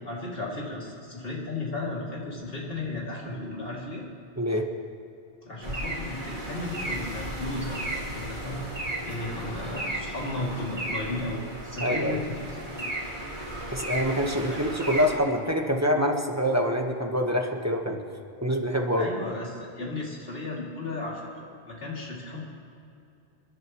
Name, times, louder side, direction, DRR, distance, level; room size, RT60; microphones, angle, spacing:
voice 1, 0.0-4.0 5.4-8.6 9.0-13.0 14.3-14.6 19.0-22.5, left 2 dB, 65° left, -4 dB, 3.1 m, -35 dB
sound 1, 5.6-15.2, right 1 dB, 50° right, 2.2 m, -34 dB
voice 2, 11.8-12.2 13.7-18.0 18.4-19.0, equal, 15° right, 1 dB, 1.3 m, -25 dB
28.0 x 10.5 x 3.1 m, 2.7 s
omnidirectional pair, 1.0 m